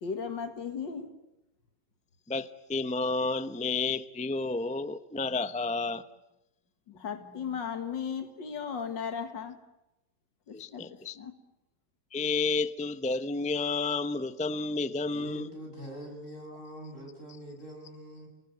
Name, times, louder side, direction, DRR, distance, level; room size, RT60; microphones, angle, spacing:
voice 1, 0.0-1.1 6.9-9.6 10.5-10.8 11.2-11.3, left 6 dB, 85° left, 7 dB, 2.4 m, -36 dB
voice 2, 2.3-6.0 10.5-11.2 12.1-15.5, left 3 dB, 10° left, 11 dB, 0.5 m, -31 dB
voice 3, 15.1-18.3, equal, 40° left, 2 dB, 7.8 m, -44 dB
29.5 x 20.5 x 9.3 m, 0.94 s
omnidirectional pair, 1.9 m